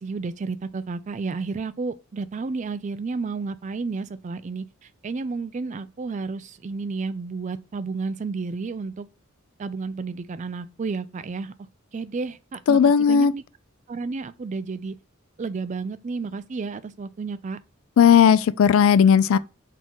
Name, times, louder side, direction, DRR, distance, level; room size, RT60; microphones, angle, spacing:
voice 1, 0.0-9.1 9.6-11.5 11.9-13.4 13.9-15.0 15.4-17.6, right 4 dB, 35° right, 0.4 m, -31 dB
voice 2, 12.7-13.3 18.0-19.4, left 7 dB, 80° left, 0.3 m, -16 dB
4.2 x 3.0 x 3.7 m
head